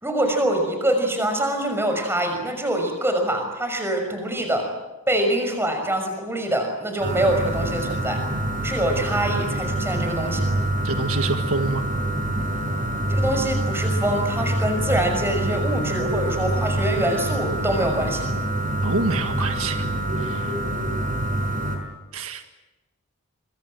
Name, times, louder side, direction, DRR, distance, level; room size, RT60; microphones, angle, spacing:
voice 1, 0.0-4.7 5.1-8.2 8.6-10.5 13.1-18.3, right 1 dB, 10° right, 5 dB, 6.0 m, -24 dB
sound 1, 7.0-21.8, right 1 dB, 40° right, 5.8 m, -26 dB
voice 2, 10.8-11.9 18.8-19.9 20.2-20.6 22.1-22.4, right 3 dB, 70° right, 6 dB, 1.7 m, -26 dB
26.5 x 24.0 x 7.8 m, 1.1 s
head